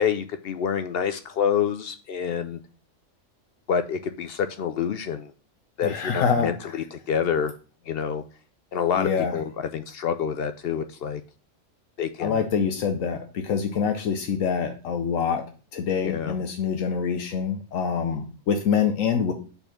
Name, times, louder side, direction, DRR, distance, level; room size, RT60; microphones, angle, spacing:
voice 1, 0.0-2.6 3.7-5.3 5.8-7.5 7.9-8.2 8.7-11.2 12.0-12.5 16.0-16.4, left 7 dB, 65° left, 9 dB, 0.6 m, -27 dB
voice 2, 5.8-6.5 9.0-9.3 12.2-15.4 15.7-19.3, left 6 dB, 80° left, 5 dB, 1.1 m, -25 dB
5.4 x 4.4 x 5.8 m, 0.39 s
omnidirectional pair, 1.4 m